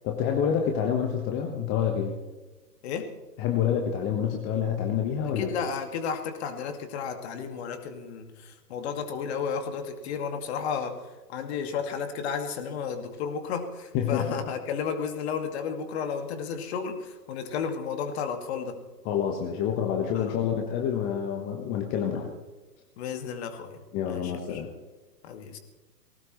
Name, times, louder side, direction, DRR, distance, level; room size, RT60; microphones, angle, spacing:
voice 1, 0.0-2.2 3.4-5.5 13.9-14.4 19.0-22.3 23.9-24.7, left 8 dB, 25° left, 3 dB, 1.4 m, -27 dB
voice 2, 2.8-3.1 5.4-11.0 11.3-18.8 20.1-20.4 23.0-24.6 25.2-25.6, left 6 dB, 40° left, 6 dB, 2.1 m, -33 dB
19.5 x 17.5 x 3.2 m, 1.2 s
figure-of-eight pair, 120°, 49 cm